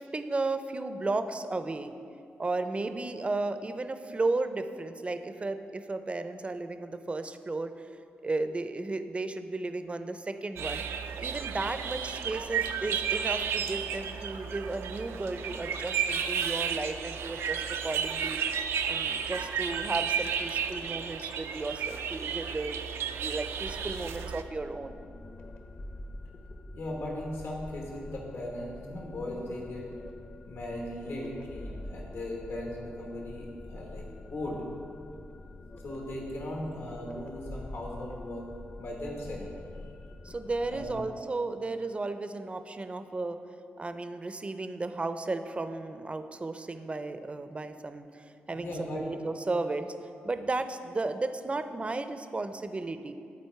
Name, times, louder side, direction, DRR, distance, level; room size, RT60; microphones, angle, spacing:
voice 1, 0.0-1.9 2.4-7.9 8.2-10.8 11.2-18.4 18.9-25.0 40.2-43.4 43.8-49.9 50.2-53.1, right 3 dB, 30° right, 10 dB, 0.5 m, -34 dB
sound 1, 10.6-24.4, right 7 dB, 90° right, 0.4 m, -33 dB
sound 2, 23.7-41.1, left 2 dB, 45° left, 0.9 m, -46 dB
voice 2, 26.7-29.9 30.5-34.0 34.3-34.6 35.8-38.5 38.8-39.5 40.7-41.0 48.5-49.0, left 1 dB, 70° left, -2 dB, 1.5 m, -38 dB
10.5 x 4.1 x 4.6 m, 2.5 s
cardioid pair, 65°, 4 cm